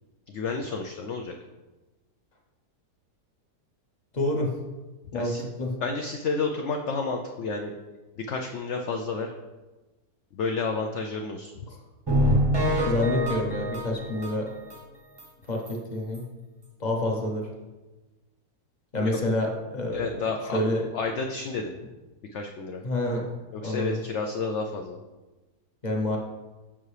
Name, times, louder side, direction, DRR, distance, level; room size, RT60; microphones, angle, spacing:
voice 1, 0.3-1.3 5.1-5.4 5.8-7.7 8.2-9.3 10.3-11.7 19.0-19.1 19.9-20.6 20.9-21.7 22.3-22.8 23.5-25.0, left 4 dB, 75° left, 3 dB, 0.6 m, -30 dB
voice 2, 4.1-4.5 5.1-5.7 11.7-11.8 12.8-14.5 15.5-16.2 16.8-17.5 18.9-20.2 20.5-20.9 22.8-23.3 23.6-24.0 25.8-26.2, left 1 dB, 35° left, 1 dB, 0.7 m, -28 dB
sound 1, 12.1-14.8 15.2-15.3 15.7-15.8 16.1-16.2, equal, 25° right, 0.6 m, -25 dB
7.2 x 5.6 x 3.2 m, 1.2 s
omnidirectional pair, 1.7 m